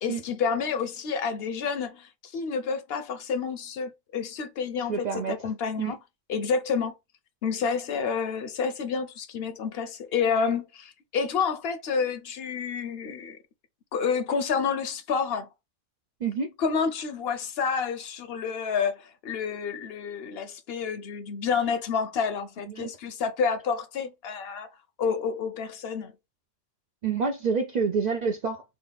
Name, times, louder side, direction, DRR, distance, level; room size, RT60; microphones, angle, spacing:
voice 1, 0.0-6.0 6.3-6.9 7.4-13.4 13.9-15.5 16.6-24.7 25.0-26.1, left 6 dB, 75° left, 0.9 m, -29 dB
voice 2, 4.9-5.3 5.8-5.9 16.2-16.5 22.7-22.9 27.0-28.6, right 5 dB, 55° right, 0.6 m, -27 dB
3.5 x 2.4 x 3.9 m
omnidirectional pair, 1.0 m